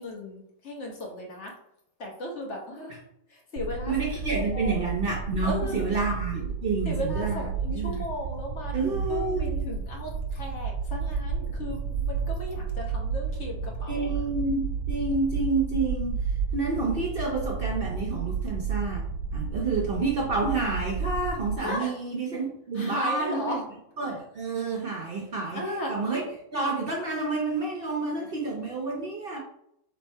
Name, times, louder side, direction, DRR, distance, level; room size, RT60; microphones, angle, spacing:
voice 1, 0.0-1.5 2.0-3.0 3.3-3.9 4.5-4.8 5.4-5.9 6.3-6.5 6.8-14.1 21.6-21.9 22.7-23.6 25.5-25.9, left 1 dB, 55° left, 0 dB, 1.2 m, -36 dB
sound 1, 3.6-21.6, right 5 dB, 90° right, 1.2 m, -31 dB
voice 2, 3.9-7.4 7.7-8.0 8.7-9.5 13.9-16.2 16.5-19.0 19.3-23.6 24.0-25.6 25.9-26.2 26.5-29.4, right 3 dB, 50° right, -1 dB, 0.7 m, -29 dB
3.4 x 3.2 x 4.4 m, 0.75 s
omnidirectional pair, 1.5 m